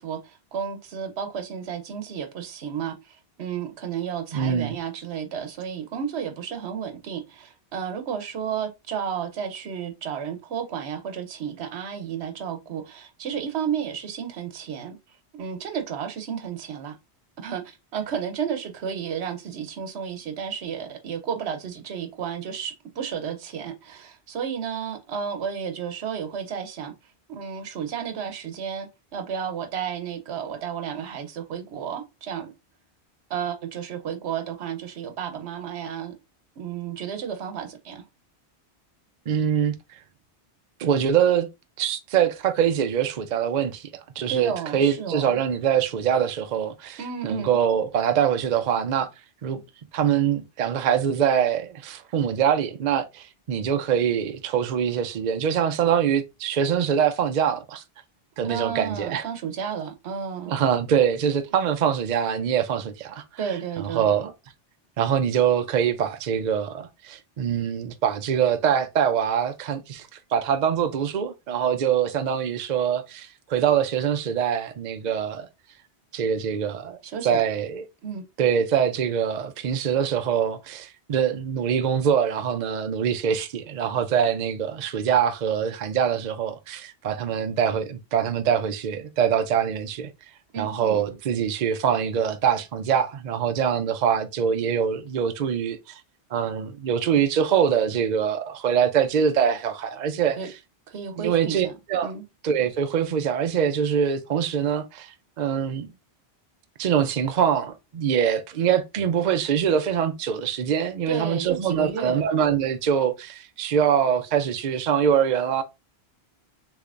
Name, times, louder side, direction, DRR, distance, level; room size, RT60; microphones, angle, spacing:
voice 1, 0.0-15.0 15.3-17.0 17.4-26.9 27.3-32.5 33.3-36.2 36.6-38.0 44.3-45.4 47.0-47.6 58.4-60.5 63.4-64.2 77.0-77.4 78.0-78.2 90.5-91.2 100.4-100.5 100.9-101.7 102.0-102.2 111.1-112.3, right 7 dB, 80° right, 1.0 m, -32 dB
voice 2, 4.3-4.8 39.3-39.8 40.8-41.5 41.8-49.1 49.4-49.6 49.9-57.8 58.4-59.3 60.5-64.3 65.0-75.5 76.1-77.0 77.2-77.8 78.4-90.1 90.6-96.0 96.3-100.4 101.2-102.1 102.4-105.9 106.8-115.6, right 8 dB, 55° right, 0.6 m, -24 dB
6.6 x 2.9 x 2.5 m
omnidirectional pair, 1.1 m